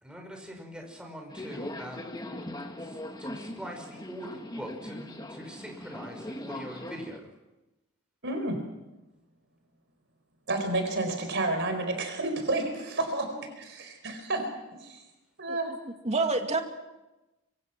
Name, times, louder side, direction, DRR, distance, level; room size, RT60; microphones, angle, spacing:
voice 1, 0.0-2.0 2.8-7.3, equal, 5° right, 2 dB, 5.5 m, -43 dB
Subway metro underground, 1.3-7.2, left 1 dB, 20° left, 1.6 m, -40 dB
voice 2, 8.2-8.6 10.5-14.5 14.8-15.0 15.4-15.7, right 2 dB, 55° right, 5 dB, 4.7 m, -30 dB
voice 3, 15.5-16.6, right 3 dB, 30° right, 4 dB, 2.3 m, -29 dB
26.0 x 24.0 x 6.2 m, 1.0 s
head